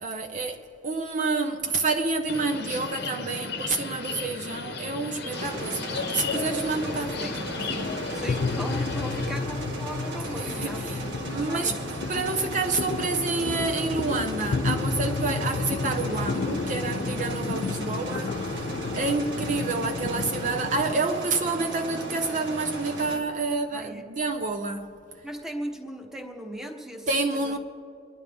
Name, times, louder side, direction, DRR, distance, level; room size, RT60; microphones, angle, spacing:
voice 1, 0.0-7.3 7.6-8.0 10.4-11.0 11.3-11.7 12.1-24.9 27.1-27.6, right 3 dB, 45° right, 0.6 m, -29 dB
sound 1, 2.3-9.3, left 4 dB, 65° left, 0.9 m, -35 dB
sound 2, 4.1-20.9, left 4 dB, 45° left, 0.4 m, -32 dB
sound 3, 5.3-23.2, right 2 dB, 90° right, 1.7 m, -37 dB
voice 2, 6.8-7.3 8.1-11.8 23.7-24.1 25.2-27.6, equal, 5° right, 1.1 m, -38 dB
29.0 x 10.5 x 3.5 m
head